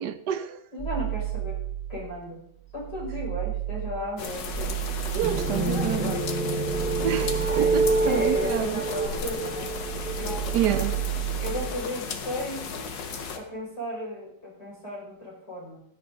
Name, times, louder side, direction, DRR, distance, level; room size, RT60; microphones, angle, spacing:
voice 1, 0.0-0.6 5.1-6.2 7.0-8.9 10.5-11.0, right 9 dB, 70° right, 1.3 m, -28 dB
voice 2, 0.7-1.6 1.9-2.4 2.7-4.7 5.7-6.2 7.5-7.7 8.0-9.7 10.2-10.8 11.4-12.7 13.3-15.8, left 1 dB, 65° left, 6.3 m, -34 dB
sound 1, 0.8-2.2 2.6-9.2 9.5-11.8, right 16 dB, 25° left, 1.7 m, -33 dB
sound 2, 4.2-13.4, left 5 dB, 85° left, 1.9 m, -35 dB
sound 3, 5.2-11.1, right 3 dB, 5° right, 0.8 m, -27 dB
16.0 x 9.5 x 3.8 m
omnidirectional pair, 1.9 m